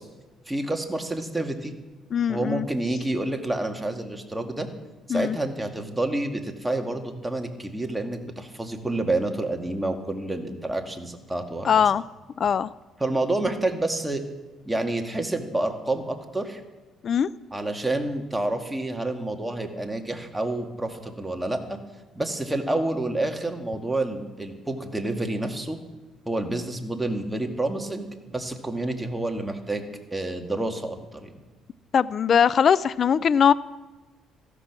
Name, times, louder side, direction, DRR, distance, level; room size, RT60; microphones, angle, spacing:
voice 1, 0.5-1.7 2.3-4.7 5.1-11.7 13.0-14.2 14.7-16.6 17.5-21.8 22.2-25.8 26.3-29.8 30.1-31.4, right 2 dB, 10° right, 4 dB, 2.0 m, -28 dB
voice 2, 2.1-2.7 5.1-5.4 11.6-12.0 12.4-12.7 17.0-17.3 31.9-33.5, left 7 dB, 50° left, 19 dB, 0.4 m, -21 dB
15.0 x 13.0 x 6.1 m, 1.2 s
cardioid pair, 95°, 0 cm